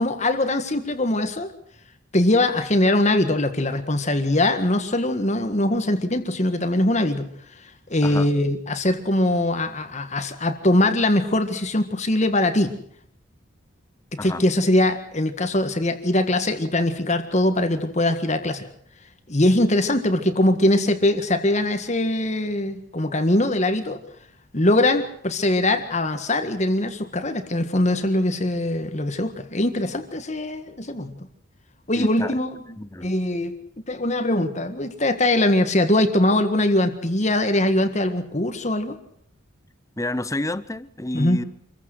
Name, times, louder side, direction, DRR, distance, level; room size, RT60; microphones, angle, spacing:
voice 1, 0.0-1.5 2.1-7.3 7.9-12.7 14.2-18.6 19.3-24.0 24.5-31.1 31.9-32.6 33.0-33.5 33.9-38.9 41.1-41.4, left 1 dB, 35° left, 1.7 m, -22 dB
voice 2, 32.0-32.4 32.8-33.1 40.0-41.4, left 1 dB, 15° left, 0.8 m, -29 dB
26.0 x 15.5 x 7.9 m
head